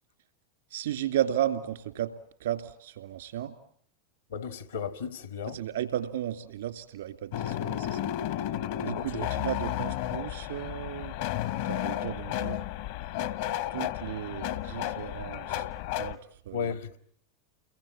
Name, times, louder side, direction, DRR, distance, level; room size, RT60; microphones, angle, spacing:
voice 1, 0.7-2.1 2.4-3.5 5.5-8.1 8.8-11.2 11.7-12.6 13.7-16.7, right 11 dB, 80° right, 2.6 m, -34 dB
voice 2, 4.3-5.6 9.0-9.3 16.5-17.0, left 6 dB, 85° left, 1.8 m, -35 dB
sound 1, 7.3-16.2, left 12 dB, 65° left, 1.1 m, -33 dB
29.5 x 22.5 x 8.8 m
hypercardioid pair, 95°, 0 cm